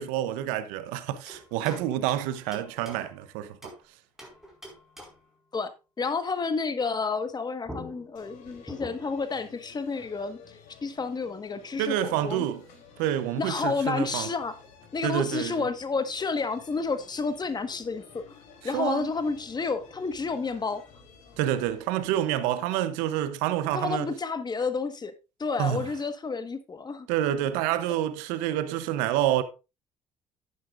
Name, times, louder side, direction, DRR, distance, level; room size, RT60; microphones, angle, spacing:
voice 1, 0.0-3.7 11.8-12.6 13.0-14.3 15.0-15.6 18.7-19.1 21.4-24.1 25.6-25.8 27.1-29.4, right 12 dB, 90° right, 0.8 m, -28 dB
sound 1, 1.3-3.8 4.2-5.4 7.3-7.4 7.7-9.3, equal, 5° right, 4.9 m, -45 dB
voice 2, 5.5-12.5 13.4-14.6 14.9-18.4 18.6-20.8 23.7-25.1 25.4-27.1, left 4 dB, 30° left, 1.4 m, -30 dB
sound 2, 8.2-22.2, left 5 dB, 75° left, 3.4 m, -53 dB
11.5 x 9.5 x 2.5 m
supercardioid pair, 80°, 13 cm